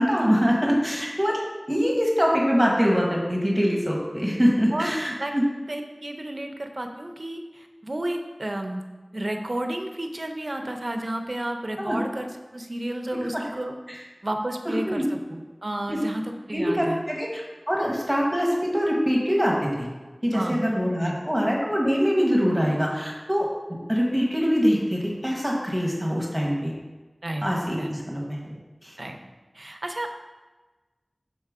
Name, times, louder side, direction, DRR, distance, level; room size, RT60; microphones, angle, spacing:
voice 1, 0.0-1.4 1.7-5.5 11.8-12.0 13.3-13.4 13.9-14.0 14.6-15.1 15.9-16.0 16.5-17.4 17.7-19.9 20.2-23.5 23.9-26.7 27.4-28.6 28.8-29.0, equal, 5° right, -3 dB, 1.2 m, -24 dB
voice 2, 5.7-8.8 9.1-13.8 14.2-15.0 15.3-17.0 20.3-20.6 21.0-21.2 27.2-27.5 27.8-27.9 29.0-29.2 29.5-30.1, right 1 dB, 55° right, 4 dB, 0.6 m, -31 dB
6.6 x 4.1 x 3.5 m, 1.2 s
wide cardioid pair, 50°, 0 cm